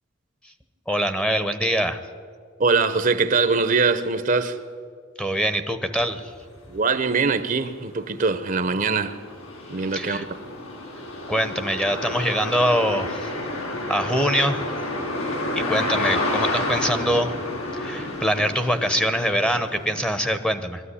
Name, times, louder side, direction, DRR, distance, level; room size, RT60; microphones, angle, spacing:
voice 1, 0.9-2.0 5.2-6.3 9.9-10.2 11.3-13.6 13.9-14.6 15.5-17.3 17.7-20.8, equal, 5° left, 0.9 m, -24 dB
voice 2, 2.6-4.6 6.7-9.2 9.7-10.2, right 4 dB, 40° right, 0.8 m, -22 dB
sound 1, 6.9-7.0 7.5-20.3, left 2 dB, 90° left, 4.3 m, -30 dB
22.5 x 13.5 x 9.9 m
head